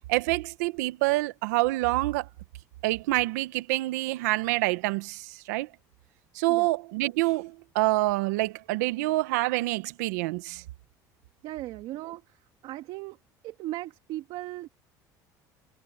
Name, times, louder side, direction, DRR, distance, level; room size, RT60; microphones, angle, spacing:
voice 1, 0.1-2.3 2.8-5.7 6.3-10.6, right 20 dB, 90° right, 1.2 m, -27 dB
voice 2, 11.4-13.2 13.4-14.7, right 16 dB, 70° right, 1.8 m, -38 dB
supercardioid pair, 95°, 9 cm